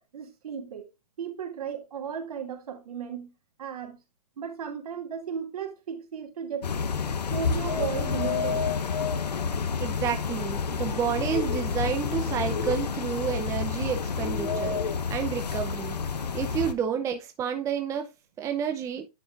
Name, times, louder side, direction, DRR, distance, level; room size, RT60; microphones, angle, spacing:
voice 1, 0.1-0.9 1.2-3.3 3.6-4.0 4.4-6.7 7.3-8.8, right 7 dB, 65° right, 2.4 m, -35 dB
sound 1, 6.6-16.7, left 5 dB, 85° left, 1.0 m, -29 dB
voice 2, 9.8-14.8 15.1-16.0 16.3-18.1 18.4-19.1, right 8 dB, 15° right, 0.7 m, -30 dB
9.9 x 5.4 x 2.5 m
hypercardioid pair, 135°, 20 cm